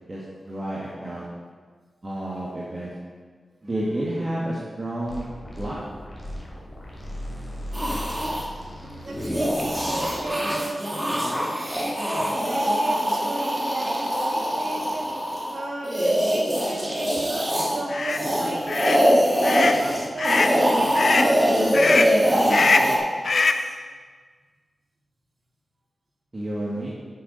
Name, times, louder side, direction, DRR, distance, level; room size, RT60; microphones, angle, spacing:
voice 1, 0.1-1.2 2.0-2.9 3.6-5.2 5.6-5.8 17.9-18.0 26.3-26.9, right 1 dB, 30° right, -7 dB, 1.6 m, -30 dB
sound 1, 5.1-10.3, equal, 30° left, 2.5 m, -37 dB
sound 2, 7.7-8.4 9.1-17.8 18.1-23.0, equal, 10° right, 1.6 m, -23 dB
voice 2, 8.8-11.3 11.7-15.1 15.5-23.7, right 2 dB, 50° right, -1 dB, 1.7 m, -35 dB
sound 3, 17.9-18.2 18.7-19.0 19.4-19.8 20.2-20.6 20.9-21.3 21.7-22.2 22.5-23.0 23.2-23.7, left 4 dB, 55° left, 0.5 m, -22 dB
9.7 x 6.6 x 5.1 m, 1.5 s
wide cardioid pair, 130°, 0 cm